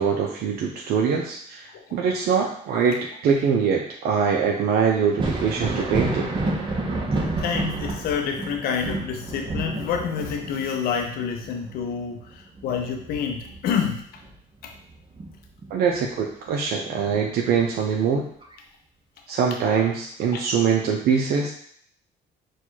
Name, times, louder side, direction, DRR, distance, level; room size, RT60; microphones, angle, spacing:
voice 1, 0.0-6.3 15.7-18.2 19.3-21.5, right 6 dB, 65° right, 0 dB, 0.5 m, -23 dB
Thunder, 5.0-14.3 14.7-15.9 17.5-17.6 18.4-18.5, right 2 dB, 25° right, 0.9 m, -30 dB
voice 2, 7.4-14.2 14.6-14.7 20.3-20.4, left 7 dB, 65° left, 3 dB, 0.5 m, -28 dB
4.3 x 2.3 x 4.4 m, 0.63 s
cardioid pair, 110°, 17 cm